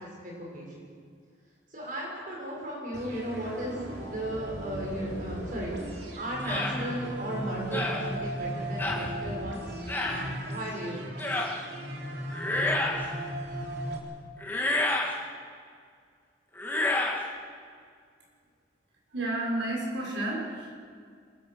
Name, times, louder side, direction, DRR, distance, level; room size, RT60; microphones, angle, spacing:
voice 1, 0.2-0.7 1.7-5.9 6.2-9.6 10.0-11.1, right 1 dB, 45° right, -3 dB, 7.2 m, -35 dB
sound 1, 2.9-14.0, right 1 dB, 65° right, 3.5 m, -37 dB
sound 2, 6.4-6.7 7.7-8.0 8.8-9.0 9.9-10.2 11.2-11.5 12.3-13.1 14.4-15.1 16.5-17.2, left 2 dB, 10° left, 2.3 m, -28 dB
voice 2, 19.1-20.8, right 1 dB, 80° right, -2 dB, 6.4 m, -31 dB
25.0 x 22.5 x 6.5 m, 2.1 s
head